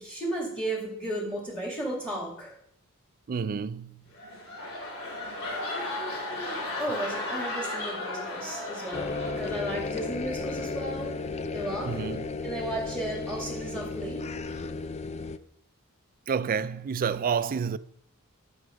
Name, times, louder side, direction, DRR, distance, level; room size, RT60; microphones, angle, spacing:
voice 1, 0.0-2.5 6.8-11.2 11.5-12.0 12.4-14.3, right 1 dB, 5° left, 2.4 m, -34 dB
voice 2, 3.3-4.1 11.8-12.3 16.3-17.8, right 6 dB, 40° right, 0.4 m, -29 dB
sound 1, 4.1-10.0 10.4-10.7, left 2 dB, 70° left, 4.1 m, -35 dB
sound 2, 8.9-15.4, left 3 dB, 30° left, 0.4 m, -34 dB
11.0 x 6.2 x 5.2 m
head